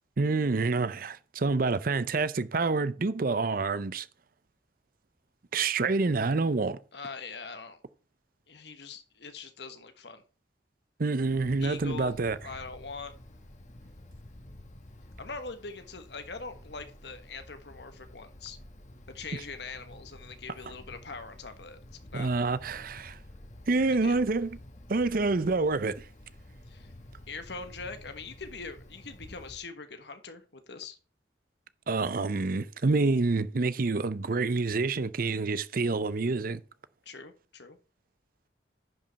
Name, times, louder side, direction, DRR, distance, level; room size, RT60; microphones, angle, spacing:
voice 1, 0.2-4.1 5.5-6.8 11.0-12.4 22.1-23.2 23.7-24.5 24.9-26.1 31.9-36.6, right 3 dB, 50° right, 0.6 m, -27 dB
voice 2, 6.9-7.8 8.5-10.2 11.6-12.2 12.4-13.1 15.2-18.6 19.1-21.8 22.1-22.3 23.9-24.2 26.7-26.9 27.3-31.0 37.0-37.8, left 4 dB, 65° left, 1.4 m, -42 dB
Wind, 11.2-29.6, left 1 dB, 40° left, 1.5 m, -50 dB
10.5 x 5.4 x 4.1 m
head